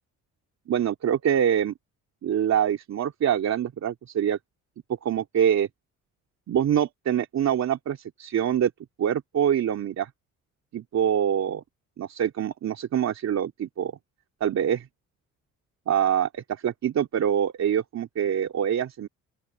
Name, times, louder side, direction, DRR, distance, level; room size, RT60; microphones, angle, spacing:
voice 1, 0.7-1.7 2.2-4.4 5.0-5.7 6.5-8.7 9.0-10.1 10.7-11.6 12.0-13.9 14.4-14.9 15.9-19.1, right 9 dB, 65° right, 3.1 m, -25 dB
open air
cardioid pair, 90°, 30 cm